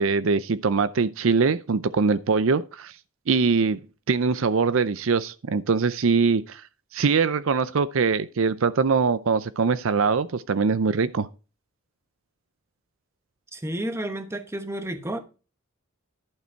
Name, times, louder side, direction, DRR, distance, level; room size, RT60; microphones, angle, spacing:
voice 1, 0.0-2.9 3.3-3.8 4.1-6.6 6.9-11.3, right 5 dB, 65° right, 0.5 m, -22 dB
voice 2, 13.5-15.2, right 1 dB, 10° right, 1.0 m, -31 dB
11.5 x 6.7 x 4.5 m
head